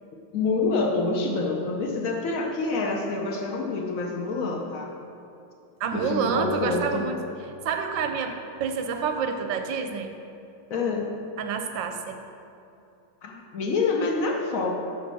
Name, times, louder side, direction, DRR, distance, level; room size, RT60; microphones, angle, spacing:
voice 1, 0.3-4.9 5.9-7.1 10.7-11.1 13.2-14.7, left 3 dB, 65° left, 1 dB, 0.8 m, -27 dB
voice 2, 5.8-7.2 7.6-10.1 11.4-12.2, right 6 dB, 75° right, 6 dB, 1.2 m, -28 dB
6.3 x 6.0 x 6.1 m, 2.7 s
omnidirectional pair, 2.2 m